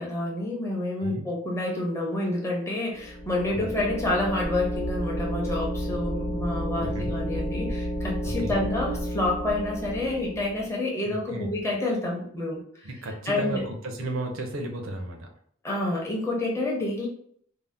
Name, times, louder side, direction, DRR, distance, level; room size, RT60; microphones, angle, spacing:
voice 1, 0.0-12.9 13.3-13.6 15.6-17.1, left 2 dB, 15° left, -3 dB, 0.6 m, -28 dB
sound 1, 2.9-10.7, equal, 80° left, 0.8 m, -31 dB
voice 2, 6.8-7.1 8.2-8.6 11.1-11.5 12.8-15.3, right 1 dB, 75° right, 3 dB, 0.6 m, -34 dB
2.6 x 2.1 x 3.3 m, 0.62 s
head